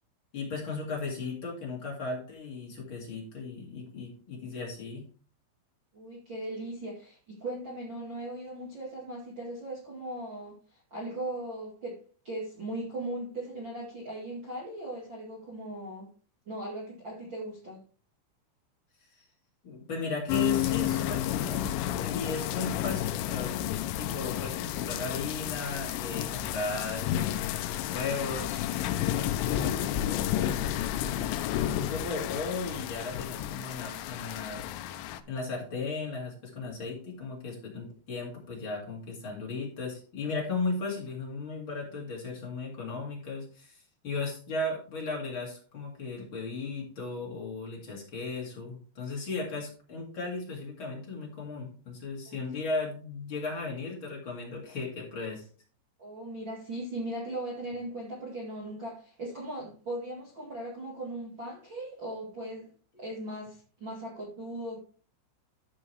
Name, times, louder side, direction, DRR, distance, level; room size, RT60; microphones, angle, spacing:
voice 1, 0.3-5.0 19.2-19.3 19.6-23.5 24.0-27.5 27.8-34.6 35.3-55.5 62.9-63.0, left 3 dB, 40° left, -2 dB, 1.8 m, -36 dB
voice 2, 5.9-12.0 12.2-16.1 16.4-17.8 52.2-52.4 56.0-62.7 63.0-64.8, right 1 dB, 85° right, -6 dB, 1.0 m, -38 dB
sound 1, 20.3-35.2, left 12 dB, 80° left, 3.0 m, -31 dB
13.5 x 5.4 x 3.3 m, 0.40 s
omnidirectional pair, 5.9 m